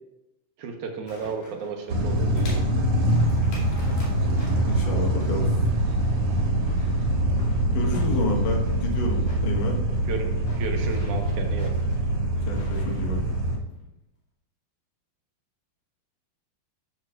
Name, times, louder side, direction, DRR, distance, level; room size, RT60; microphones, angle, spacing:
voice 1, 0.6-2.6 10.1-10.3 10.6-11.7, right 5 dB, 70° right, 3 dB, 2.2 m, -33 dB
sound 1, 1.1-5.5 5.8-8.9 9.2-13.5 13.8-13.9, left 2 dB, 90° left, 4.3 m, -44 dB
sound 2, 1.9-13.6, right 1 dB, 50° right, 2.2 m, -24 dB
voice 2, 4.7-5.5 7.7-9.8 12.5-13.2, left 2 dB, 70° left, 1 dB, 2.8 m, -30 dB
13.0 x 6.5 x 2.4 m, 0.87 s
omnidirectional pair, 4.0 m